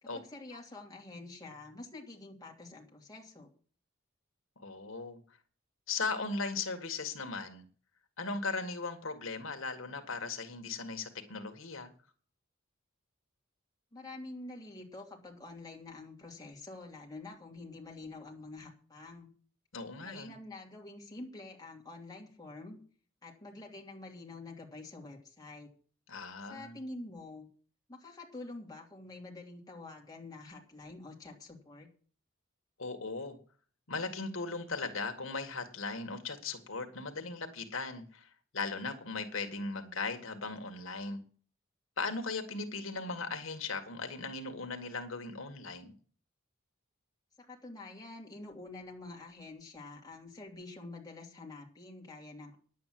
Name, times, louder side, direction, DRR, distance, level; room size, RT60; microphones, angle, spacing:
voice 1, 0.0-3.5 13.9-19.3 20.0-22.8 23.2-25.7 26.5-27.5 27.9-31.9 47.4-52.6, left 2 dB, 20° left, -1 dB, 2.9 m, -47 dB
voice 2, 4.6-5.2 5.9-7.7 8.2-11.9 19.7-20.3 26.1-26.8 32.8-33.4 33.9-41.2 42.0-45.9, left 4 dB, 85° left, 5 dB, 1.8 m, -38 dB
10.5 x 8.5 x 7.6 m, 0.43 s
head